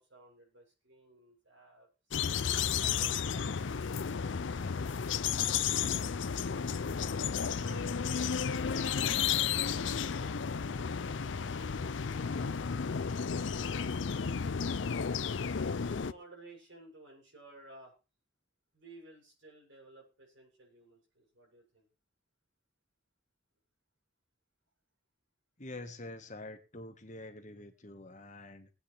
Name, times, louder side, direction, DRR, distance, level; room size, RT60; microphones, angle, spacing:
voice 1, 0.0-1.9 2.8-6.6 7.5-12.5 13.2-14.8 15.4-17.9 18.7-21.9, right 2 dB, 80° right, -1 dB, 7.5 m, -57 dB
sound 1, 2.1-16.1, left 6 dB, 70° left, 0.5 m, -33 dB
voice 2, 25.6-28.7, left 2 dB, 40° left, 5 dB, 1.6 m, -46 dB
21.5 x 9.0 x 3.4 m, 0.31 s
head